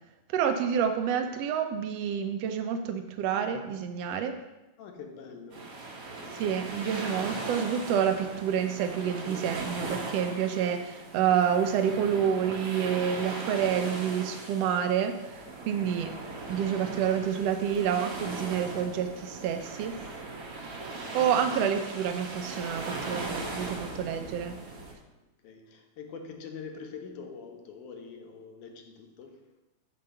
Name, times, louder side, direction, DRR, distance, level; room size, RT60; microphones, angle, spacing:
voice 1, 0.3-4.3 6.4-15.1 15.7-16.1 16.5-19.9 21.1-24.5, right 8 dB, 80° right, 6 dB, 1.4 m, -28 dB
voice 2, 4.8-5.8 25.1-29.5, left 5 dB, 75° left, 4 dB, 2.4 m, -44 dB
sound 1, 5.5-24.9, right 2 dB, 65° right, 0.9 m, -39 dB
7.5 x 4.8 x 6.7 m, 1.0 s
omnidirectional pair, 3.6 m